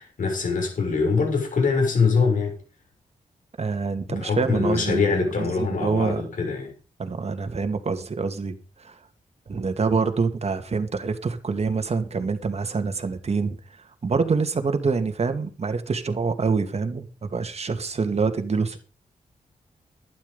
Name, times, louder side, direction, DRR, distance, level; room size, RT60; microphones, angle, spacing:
voice 1, 0.0-2.6 4.1-6.7, left 4 dB, 70° left, 6.9 m, -23 dB
voice 2, 3.6-6.2 7.0-9.0 9.5-18.8, right 4 dB, 50° right, 2.4 m, -26 dB
12.0 x 11.5 x 5.5 m
cardioid pair, 75°, 14 cm